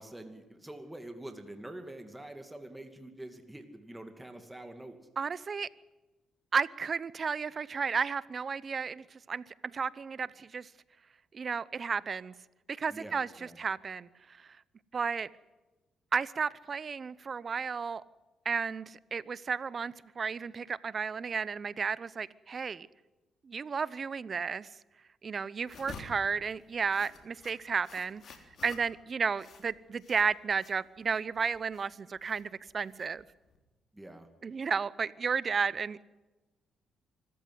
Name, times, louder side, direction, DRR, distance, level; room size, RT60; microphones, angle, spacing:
voice 1, 0.0-5.0 12.9-13.6 33.9-34.3, right 1 dB, 10° right, 6 dB, 2.5 m, -46 dB
voice 2, 5.2-5.7 6.5-10.7 11.3-12.3 12.7-14.5 14.9-15.3 16.1-18.0 18.4-22.9 23.4-24.7 25.2-28.2 28.6-33.3 34.4-36.1, right 5 dB, 40° right, 19 dB, 0.8 m, -33 dB
sound 1, 25.7-33.6, left 4 dB, 60° left, 3.5 m, -51 dB
25.0 x 14.5 x 9.6 m, 1.1 s
cardioid pair, 90°, 0 cm